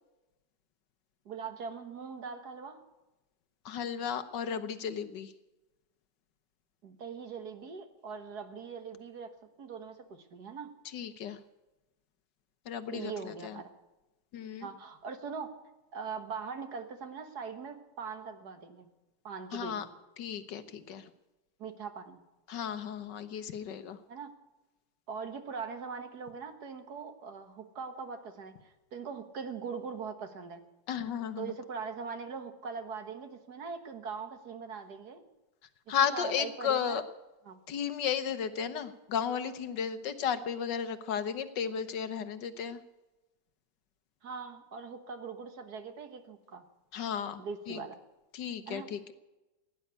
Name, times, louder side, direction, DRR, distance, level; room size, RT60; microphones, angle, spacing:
voice 1, 1.3-2.8 6.8-9.3 9.6-10.7 12.9-13.7 14.6-15.5 15.9-18.9 19.2-19.9 21.6-22.2 24.1-24.3 25.1-30.6 31.4-35.3 35.9-37.0 37.5-37.6 44.2-46.7 47.4-48.0 48.7-48.9, right 5 dB, 60° right, 8 dB, 1.9 m, -41 dB
voice 2, 3.6-5.3 10.8-11.4 12.6-13.6 14.3-14.7 19.5-19.9 20.2-21.1 22.5-24.0 30.9-31.5 35.9-37.0 37.7-42.8 46.9-47.8 48.3-49.1, left 8 dB, 70° left, 11 dB, 1.6 m, -34 dB
17.0 x 10.0 x 8.2 m, 1.0 s
omnidirectional pair, 2.0 m